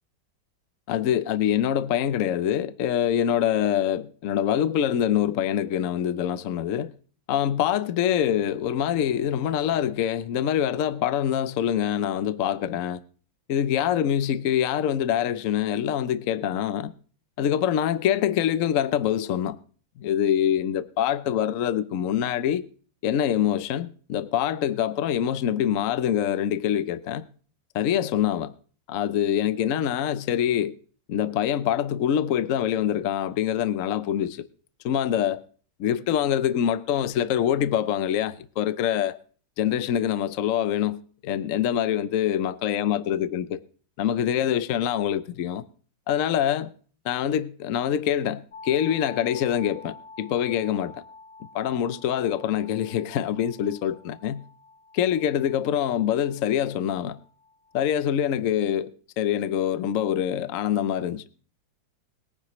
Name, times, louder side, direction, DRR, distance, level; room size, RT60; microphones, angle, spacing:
voice 1, 0.9-6.9 7.3-13.0 13.5-16.9 17.4-19.6 20.0-22.6 23.0-27.2 27.7-28.5 28.9-30.7 31.1-34.5 34.8-35.4 35.8-39.2 39.6-43.6 44.0-45.6 46.1-46.7 47.0-51.0 51.5-54.4 54.9-57.2 57.7-58.9 59.2-61.2, left 10 dB, 65° left, 0.8 m, -25 dB
sound 1, 48.5-58.3, left 3 dB, 50° left, 1.4 m, -48 dB
21.5 x 9.9 x 3.1 m
omnidirectional pair, 2.1 m